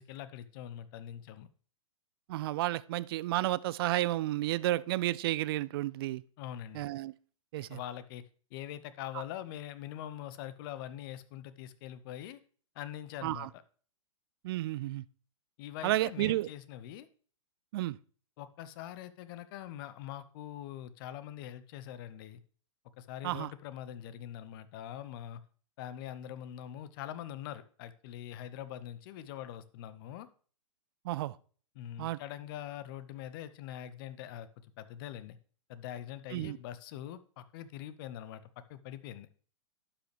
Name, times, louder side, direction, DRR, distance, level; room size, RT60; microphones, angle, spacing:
voice 1, 0.0-1.5 6.4-6.9 7.6-8.2 8.5-12.4 12.7-13.5 15.6-17.1 18.4-22.4 23.0-25.4 25.8-30.3 31.8-34.5 34.8-35.4 35.7-38.4 38.7-39.3, left 11 dB, 45° left, 0.7 m, -43 dB
voice 2, 2.3-6.2 6.7-7.1 7.5-7.8 13.2-13.5 14.4-15.0 15.8-16.5 17.7-18.0 23.2-23.5 31.0-31.4 32.0-32.2 36.3-36.6, right 16 dB, 50° right, 0.4 m, -31 dB
11.0 x 5.9 x 3.2 m
figure-of-eight pair, 105°, 17 cm